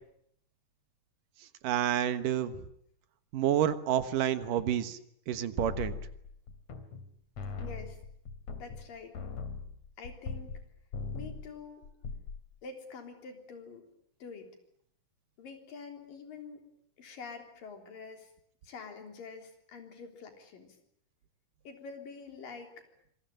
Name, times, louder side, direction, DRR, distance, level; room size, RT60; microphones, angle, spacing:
voice 1, 1.6-2.6 3.3-5.0 5.3-5.9, right 10 dB, 80° right, 11 dB, 2.9 m, -29 dB
sound 1, 5.6-7.1 7.4-10.6 10.9-11.5 11.8-12.4, left 4 dB, 55° left, 3.7 m, -40 dB
voice 2, 7.6-8.0 8.5-9.2 10.0-10.5 11.1-11.9 12.6-13.9 14.2-14.5 15.4-16.7 17.0-18.3 18.6-20.8 21.7-22.9, left 5 dB, 90° left, 5 dB, 5.3 m, -46 dB
26.0 x 22.5 x 8.8 m, 0.71 s
omnidirectional pair, 3.8 m